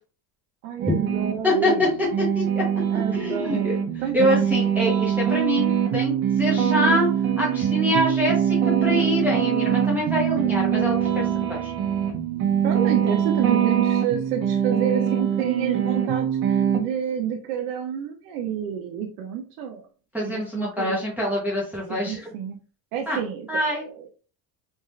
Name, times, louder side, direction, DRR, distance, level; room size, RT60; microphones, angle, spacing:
voice 1, 0.6-1.9 2.9-4.5 9.8-10.1 12.6-19.9 20.2-21.0 21.9-22.6 22.9-24.0, right 8 dB, 80° right, 2 dB, 0.8 m, -29 dB
sound 1, 0.8-1.3 1.8-16.8, right 9 dB, 60° right, 1.2 m, -23 dB
voice 2, 1.4-1.9 2.3-2.6 3.1-3.8 4.1-7.1 7.4-11.7 20.1-22.3 23.1-23.2 23.5-23.9, left 1 dB, 5° right, -5 dB, 0.8 m, -25 dB
3.5 x 2.4 x 4.2 m, 0.38 s
cardioid pair, 155°, 41 cm